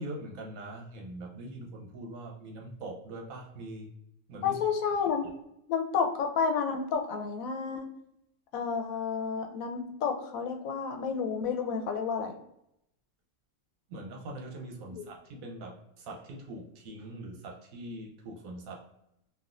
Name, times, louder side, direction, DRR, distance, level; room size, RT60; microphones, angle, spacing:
voice 1, 0.0-3.9 4.3-4.6 13.9-18.8, right 1 dB, 80° right, 1 dB, 1.1 m, -42 dB
voice 2, 4.4-5.3 5.7-7.9 8.5-12.4 14.9-15.0, left 6 dB, 85° left, 4 dB, 1.0 m, -30 dB
3.4 x 2.3 x 2.4 m, 0.80 s
omnidirectional pair, 1.4 m